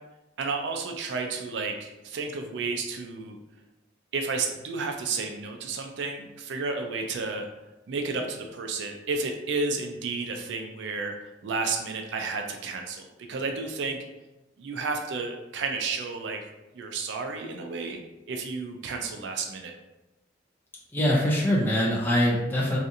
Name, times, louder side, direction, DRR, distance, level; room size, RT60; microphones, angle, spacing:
voice 1, 0.4-3.4 4.1-7.5 7.9-14.0 14.6-16.5 16.7-18.0 18.3-19.7, right 4 dB, 65° right, 3 dB, 0.3 m, -32 dB
voice 2, 20.9-22.8, equal, 10° left, -4 dB, 0.4 m, -23 dB
2.7 x 2.4 x 2.5 m, 1.0 s
head